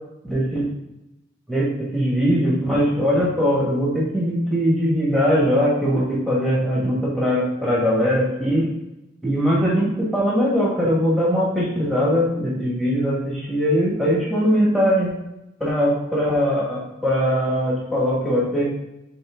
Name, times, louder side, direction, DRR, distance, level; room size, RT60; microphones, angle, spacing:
voice 1, 0.2-0.7 1.5-8.7 9.2-15.1 15.6-18.7, equal, ahead, -7 dB, 2.0 m, -21 dB
7.8 x 4.3 x 3.8 m, 0.91 s
head